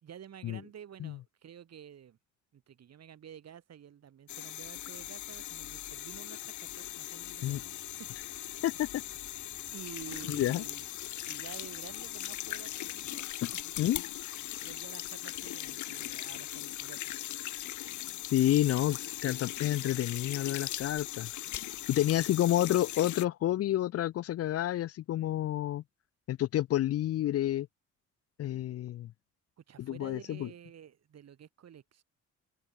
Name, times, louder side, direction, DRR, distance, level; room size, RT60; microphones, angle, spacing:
voice 1, 0.0-2.2 2.5-7.7 8.0-8.6 9.7-10.8 11.3-13.8 14.6-17.2 22.0-22.3 29.6-32.0, right 9 dB, 55° right, 3.3 m, -50 dB
sound 1, 4.3-23.3, left 13 dB, 75° left, 1.4 m, -39 dB
sound 2, 7.4-13.2, right 3 dB, 25° right, 7.8 m, -63 dB
voice 2, 8.6-9.0 10.3-10.6 13.4-13.5 13.8-14.0 18.3-21.3 21.9-25.8 26.3-27.7 28.4-29.1 29.8-30.5, left 13 dB, 55° left, 0.4 m, -29 dB
cardioid pair, 90°, 30 cm